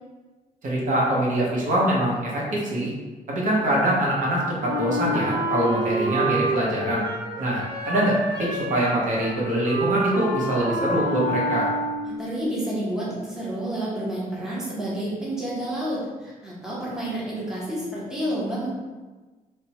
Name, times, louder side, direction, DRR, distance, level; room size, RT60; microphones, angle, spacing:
voice 1, 0.6-2.9 3.3-7.1 7.4-11.7, right 1 dB, 55° right, -5 dB, 0.7 m, -24 dB
Wind instrument woodwind instrument, 4.6-12.2, right 1 dB, 30° right, 1.2 m, -28 dB
voice 2, 12.0-18.7, right 1 dB, 5° right, -7 dB, 0.6 m, -29 dB
3.3 x 2.0 x 2.8 m, 1.3 s
wide cardioid pair, 170°, 16 cm